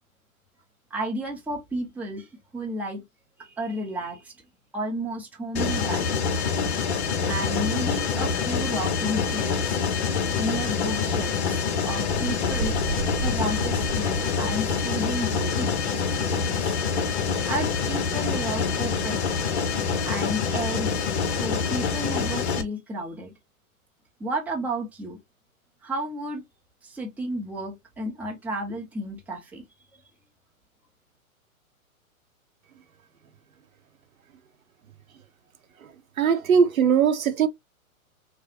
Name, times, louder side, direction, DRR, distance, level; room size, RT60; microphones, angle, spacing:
voice 1, 0.9-3.0 3.4-4.3 4.7-6.2 7.2-12.7 13.2-16.8 17.4-19.3 20.1-21.0 21.3-23.3 24.2-25.2 25.8-26.4 26.8-29.6 29.9-30.0, right 1 dB, 5° right, 0.6 m, -32 dB
Mechanisms, 5.6-22.6, left 6 dB, 50° left, 0.8 m, -26 dB
sound 1, 12.1-19.9, right 3 dB, 45° right, 0.8 m, -37 dB
voice 2, 36.2-37.5, right 7 dB, 75° right, 0.8 m, -20 dB
4.7 x 2.1 x 2.7 m
figure-of-eight pair, 115°, 43 cm